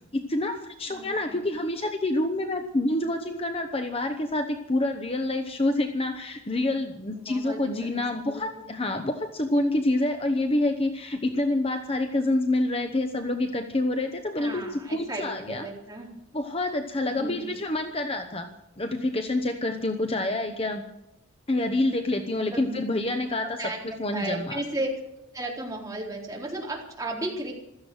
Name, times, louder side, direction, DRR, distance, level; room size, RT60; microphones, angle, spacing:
voice 1, 0.1-15.7 16.3-18.5 18.8-20.8 21.5-24.6, left 2 dB, 25° left, 6 dB, 1.0 m, -27 dB
voice 2, 0.9-1.4 7.2-8.6 14.4-16.1 17.1-17.5 22.3-22.8 23.4-24.9 25.3-27.5, right 1 dB, 15° right, -2 dB, 4.1 m, -35 dB
16.0 x 13.5 x 6.5 m, 0.86 s
head